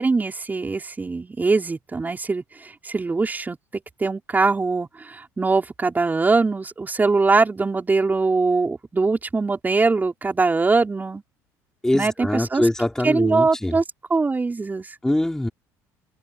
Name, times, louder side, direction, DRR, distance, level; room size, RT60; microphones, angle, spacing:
voice 1, 0.0-3.6 4.0-11.2 11.9-12.6 13.0-13.8 14.1-14.9, right 3 dB, 20° right, 5.6 m, -22 dB
voice 2, 11.8-13.8 15.0-15.5, left 1 dB, 5° left, 5.4 m, -23 dB
supercardioid pair, 85°, 8 cm